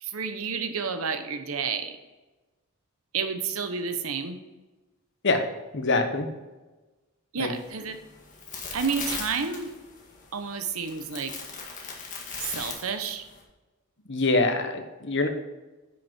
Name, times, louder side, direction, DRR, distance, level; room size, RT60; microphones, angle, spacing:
voice 1, 0.0-1.9 3.1-4.4 7.3-8.0 8.7-9.7 10.3-11.3 12.4-13.3, right 5 dB, 70° right, 8 dB, 1.0 m, -30 dB
voice 2, 5.7-6.3 7.4-7.5 14.1-15.3, left 3 dB, 55° left, 6 dB, 1.1 m, -24 dB
sound 1, 7.5-13.4, left 5 dB, 35° left, 1.9 m, -39 dB
9.9 x 6.3 x 4.5 m, 1.2 s
head